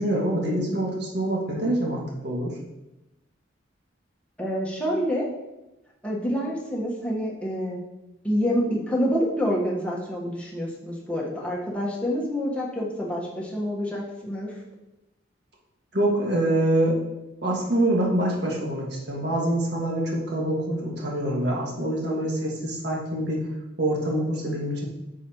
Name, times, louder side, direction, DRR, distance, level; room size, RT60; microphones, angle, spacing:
voice 1, 0.0-2.6 15.9-17.0 17.4-23.4 23.8-24.9, right 1 dB, 60° right, -3 dB, 1.9 m, -25 dB
voice 2, 4.4-5.3 6.0-7.8 8.2-14.5, equal, 5° left, -4 dB, 1.3 m, -27 dB
8.4 x 6.6 x 3.0 m, 0.97 s
head